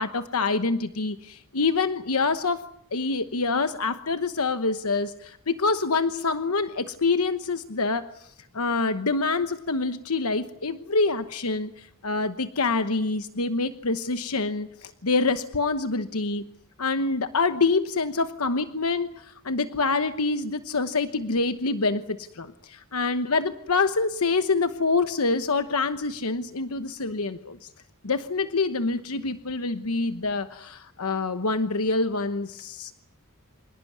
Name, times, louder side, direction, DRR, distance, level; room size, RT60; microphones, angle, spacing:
voice 1, 0.0-2.6 2.9-16.4 16.8-27.7 28.0-32.9, left 3 dB, 75° left, 10 dB, 1.1 m, -26 dB
27.0 x 18.5 x 9.5 m, 0.74 s
head